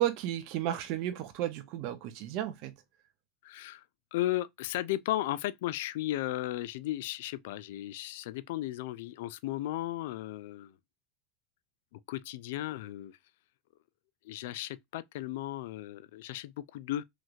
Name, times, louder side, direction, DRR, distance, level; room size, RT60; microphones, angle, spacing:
voice 1, 0.0-2.8, right 12 dB, 55° right, 0.6 m, -33 dB
voice 2, 3.4-3.8 4.1-10.8 11.9-13.2 14.2-17.0, left 14 dB, 75° left, 0.3 m, -35 dB
3.2 x 3.0 x 2.4 m
supercardioid pair, 120°, 0 cm